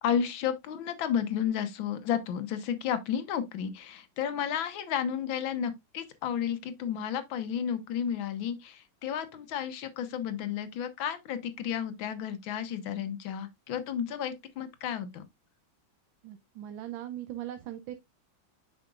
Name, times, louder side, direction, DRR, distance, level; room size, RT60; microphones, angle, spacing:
voice 1, 0.0-15.2, left 8 dB, 85° left, 1.7 m, -32 dB
voice 2, 16.2-18.0, right 12 dB, 85° right, 1.4 m, -39 dB
7.7 x 5.8 x 2.4 m
omnidirectional pair, 2.1 m